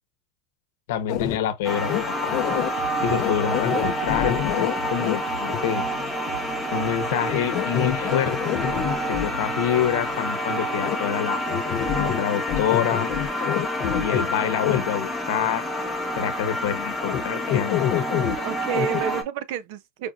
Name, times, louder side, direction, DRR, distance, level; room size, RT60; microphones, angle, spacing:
voice 1, 0.9-2.3 3.0-5.8 6.7-8.3 9.1-11.4 11.9-13.1 14.0-15.6 16.2-18.1, left 10 dB, 75° left, 0.8 m, -27 dB
sound 1, 1.1-1.4 1.8-2.7 3.1-5.2 5.5-5.6 7.3-9.3 10.8-11.0 11.5-12.2 12.5-14.3 14.6-14.8 17.1-17.2 17.5-18.4 18.7-19.0, left 11 dB, 40° left, 0.5 m, -26 dB
sound 2, 1.6-19.2, equal, ahead, 0.9 m, -28 dB
sound 3, 1.8-10.2, right 4 dB, 85° right, 0.8 m, -42 dB
voice 2, 18.4-20.1, right 9 dB, 55° right, 0.5 m, -30 dB
5.0 x 2.5 x 2.3 m
supercardioid pair, 175°, 0 cm